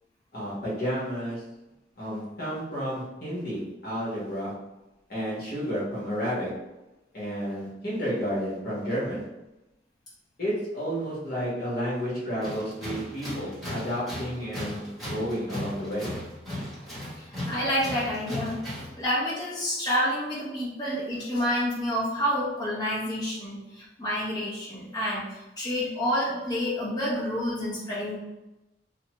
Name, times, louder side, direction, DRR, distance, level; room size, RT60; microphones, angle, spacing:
voice 1, 0.3-1.4 2.0-4.5 5.1-6.5 7.1-9.2 10.4-16.2, equal, 55° left, -7 dB, 1.3 m, -31 dB
Tools, 12.4-19.0, left 1 dB, ahead, 1.2 m, -37 dB
voice 2, 17.2-18.6 19.0-28.2, equal, 25° left, -7 dB, 0.9 m, -29 dB
2.9 x 2.2 x 2.9 m, 0.99 s
head